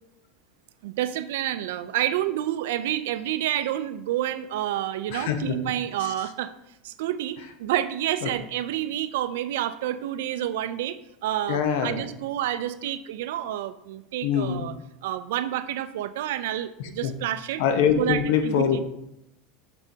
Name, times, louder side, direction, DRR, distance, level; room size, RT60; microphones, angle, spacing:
voice 1, 0.8-6.5 6.8-14.7 15.0-17.6 18.0-18.8, right 12 dB, 85° right, 12 dB, 0.4 m, -29 dB
voice 2, 5.1-5.6 6.0-6.1 8.2-8.3 11.5-12.0 14.2-14.7 17.0-17.1 17.6-18.8, left 8 dB, 75° left, 7 dB, 0.8 m, -24 dB
6.4 x 6.2 x 2.8 m, 0.83 s
supercardioid pair, 130°, 0 cm